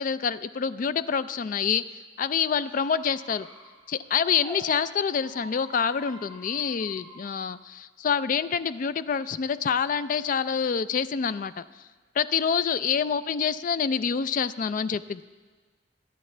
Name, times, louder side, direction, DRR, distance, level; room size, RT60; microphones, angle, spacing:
voice 1, 0.0-3.5 3.9-11.6 12.2-15.2, left 6 dB, 45° left, 14 dB, 0.3 m, -27 dB
Squeak, 2.6-4.6 5.1-7.3, equal, 20° left, 3.8 m, -47 dB
23.0 x 8.9 x 3.3 m, 1.4 s
head